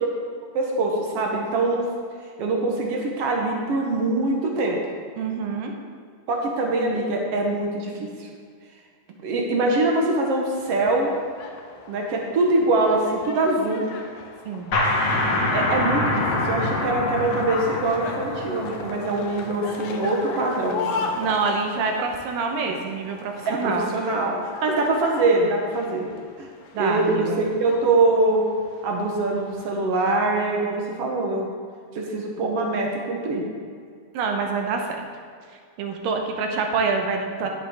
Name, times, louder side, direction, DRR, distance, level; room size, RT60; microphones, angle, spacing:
voice 1, 0.5-1.9 2.4-4.8 6.3-8.3 9.2-11.1 11.9-13.8 15.5-21.1 23.4-24.3 24.6-26.1 26.4-26.5 26.7-28.4 28.8-31.5 31.9-33.4, right 2 dB, 65° right, 0 dB, 1.5 m, -23 dB
voice 2, 5.2-5.7 14.5-14.7 21.2-23.9 26.7-27.4 34.1-35.0 35.8-37.5, right 4 dB, 80° right, 3 dB, 2.5 m, -26 dB
sound 1, 10.6-29.8, left 4 dB, 85° left, 2.4 m, -38 dB
sound 2, 14.7-20.1, left 2 dB, 45° left, 2.1 m, -25 dB
10.5 x 8.5 x 3.6 m, 2.1 s
omnidirectional pair, 3.9 m